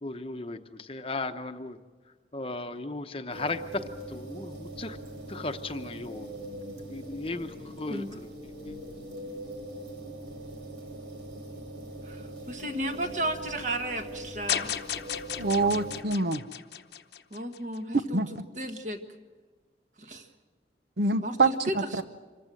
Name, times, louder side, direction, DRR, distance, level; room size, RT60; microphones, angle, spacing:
voice 1, 0.0-1.8 2.3-3.8 4.1-5.0 5.3-6.4 6.9-8.3 8.6-8.8, left 2 dB, 30° left, 8 dB, 0.9 m, -36 dB
sound 1, 3.3-16.0, right 1 dB, 80° right, 4.1 m, -42 dB
voice 2, 12.0-14.8 17.3-18.2 18.5-19.0 20.0-20.3 21.2-22.0, right 1 dB, 45° right, 6 dB, 1.6 m, -34 dB
sound 2, 14.5-17.8, left 9 dB, 70° left, 1.0 m, -34 dB
voice 3, 15.4-16.4 18.1-18.5 21.0-22.0, right 3 dB, 65° right, 10 dB, 0.9 m, -26 dB
26.5 x 15.5 x 7.8 m, 1.4 s
head